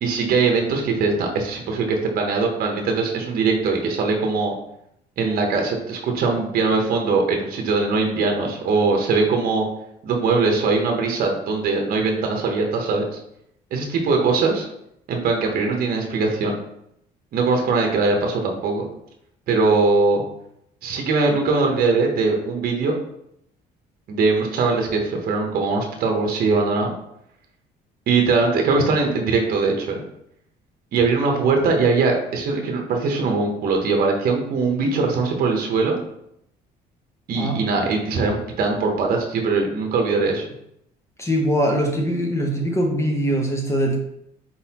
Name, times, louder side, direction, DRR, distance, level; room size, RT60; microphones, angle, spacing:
voice 1, 0.0-4.5 5.2-9.7 10.0-13.1 13.7-14.7 15.1-16.6 17.3-18.8 19.5-20.2 20.8-22.9 24.1-26.9 28.1-30.0 30.9-36.0 37.3-40.5, right 4 dB, 60° right, 2 dB, 0.9 m, -21 dB
voice 2, 41.2-44.0, equal, 15° left, 1 dB, 0.7 m, -22 dB
4.3 x 4.0 x 2.8 m, 0.77 s
cardioid pair, 110°, 17 cm